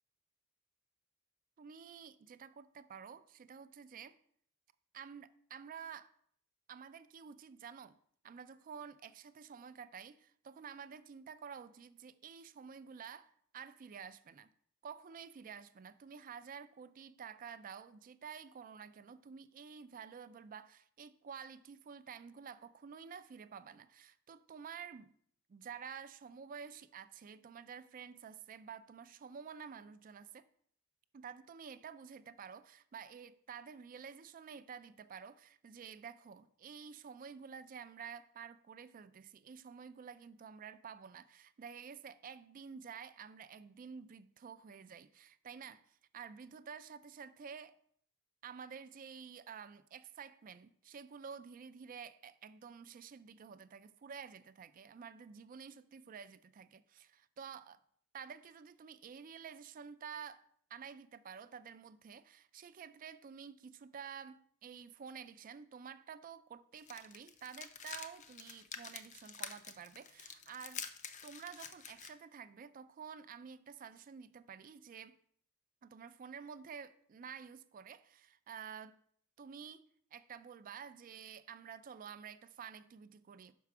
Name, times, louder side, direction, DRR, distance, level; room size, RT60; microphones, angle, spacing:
voice 1, 1.6-4.2 4.9-6.1 6.7-8.0 8.2-14.5 14.8-25.1 25.5-30.5 31.1-47.7 48.4-57.8 58.1-60.4 60.7-70.9 71.2-75.2 75.8-79.0 79.4-79.8 80.1-83.5, right 7 dB, 40° right, 0.3 m, -50 dB
sound 1, 66.8-72.1, left 7 dB, 35° left, 0.5 m, -48 dB
5.7 x 4.6 x 6.0 m
head